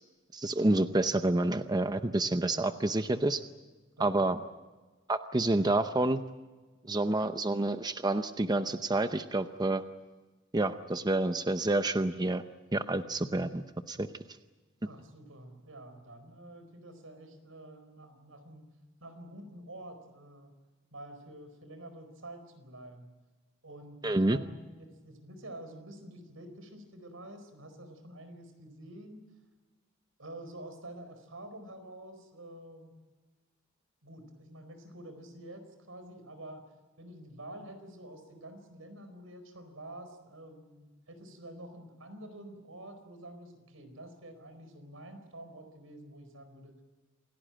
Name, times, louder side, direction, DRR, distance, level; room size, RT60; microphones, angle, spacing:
voice 1, 0.3-3.4 4.0-4.4 5.1-6.2 6.8-9.8 10.5-12.4 12.7-14.1 24.0-24.4, right 2 dB, 20° right, 9 dB, 0.7 m, -28 dB
voice 2, 14.8-18.7 19.0-20.5 20.9-23.1 23.6-29.2 30.2-33.0 34.0-36.7 37.0-46.7, right 1 dB, 85° right, 8 dB, 4.5 m, -48 dB
28.0 x 17.0 x 8.9 m, 1.3 s
head